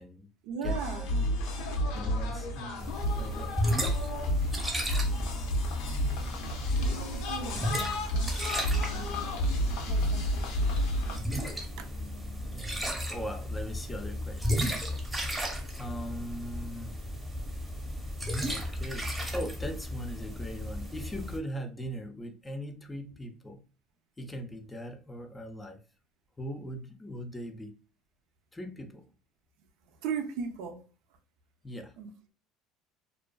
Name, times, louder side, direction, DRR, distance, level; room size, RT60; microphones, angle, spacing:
voice 1, 0.4-1.1 7.1-8.4 8.9-10.8 11.8-11.9 30.0-30.8 32.0-32.1, right 6 dB, 75° right, 0.5 m, -39 dB
sound 1, 0.6-11.2, equal, 75° left, 0.6 m, -31 dB
voice 2, 1.9-3.5 12.5-14.8 15.8-16.9 18.4-23.6 24.2-25.8 26.4-27.8 28.5-29.0 31.6-31.9, equal, 15° left, 0.4 m, -40 dB
sound 2, 2.8-21.4, equal, 5° right, 0.8 m, -34 dB
2.5 x 2.3 x 2.2 m
supercardioid pair, 105°, 0 cm